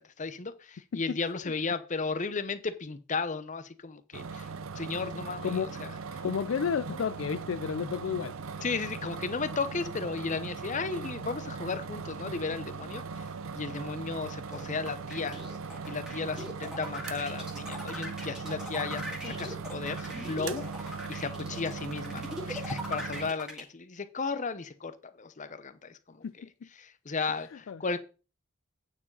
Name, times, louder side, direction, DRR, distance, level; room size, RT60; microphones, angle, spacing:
voice 1, 0.2-6.2 8.6-15.4 15.9-26.4 26.8-28.0, left 4 dB, 40° left, 0.8 m, -35 dB
sound 1, 4.1-23.3, right 5 dB, 85° right, 0.6 m, -39 dB
voice 2, 6.2-8.6 19.2-19.3 26.2-26.7 27.7-27.8, left 6 dB, 70° left, 0.4 m, -32 dB
sound 2, 14.5-23.6, left 1 dB, 5° right, 2.2 m, -40 dB
9.0 x 4.9 x 5.4 m
head